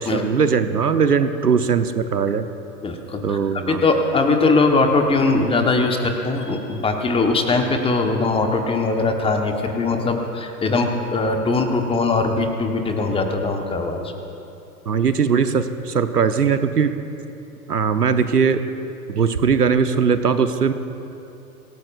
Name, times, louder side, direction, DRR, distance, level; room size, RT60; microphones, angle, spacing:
voice 1, 0.0-2.5 3.2-3.8 14.9-17.0 17.7-18.6 19.1-20.7, right 6 dB, 80° right, 10 dB, 0.9 m, -19 dB
voice 2, 2.8-3.4 3.7-14.1, left 3 dB, 10° left, 4 dB, 1.2 m, -20 dB
25.5 x 17.5 x 2.5 m, 2.8 s
figure-of-eight pair, 95°, 46 cm